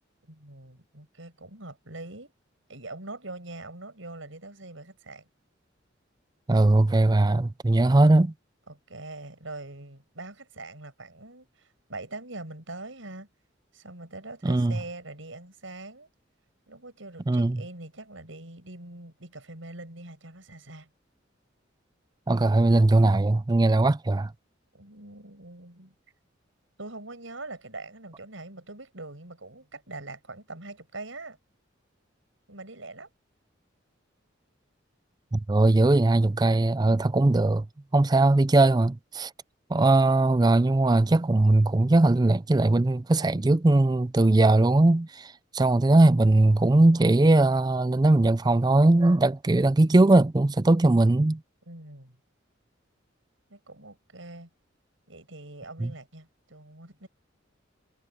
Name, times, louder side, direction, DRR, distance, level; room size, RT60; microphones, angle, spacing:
voice 1, 0.2-2.3 2.7-5.3 8.7-13.3 13.7-16.1 16.7-20.9 24.7-25.9 26.8-31.4 32.5-33.1 51.7-52.2 53.5-54.5 55.1-57.1, right 2 dB, 80° right, 5.9 m, -43 dB
voice 2, 6.5-8.3 14.4-14.8 17.3-17.6 22.3-24.3 35.3-37.7 37.9-39.3 39.7-51.4 55.8-55.9, right 2 dB, 20° right, 0.4 m, -20 dB
head